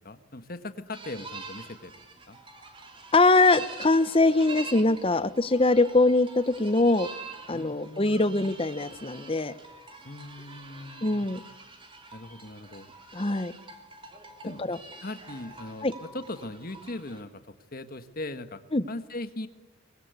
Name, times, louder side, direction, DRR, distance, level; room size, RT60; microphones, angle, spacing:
voice 1, 0.0-1.9 2.3-2.4 7.5-8.6 10.0-11.3 12.1-12.9 14.4-18.6 18.9-19.5, left 2 dB, 45° left, 10 dB, 1.5 m, -40 dB
sound 1, 0.9-17.2, right 3 dB, 25° right, 3.2 m, -45 dB
voice 2, 3.1-7.1 7.5-9.5 11.0-11.4 13.1-13.5 14.6-14.8 15.8-15.9 18.7-18.8, left 2 dB, 25° left, 15 dB, 0.8 m, -22 dB
24.0 x 21.0 x 8.3 m, 1.1 s
head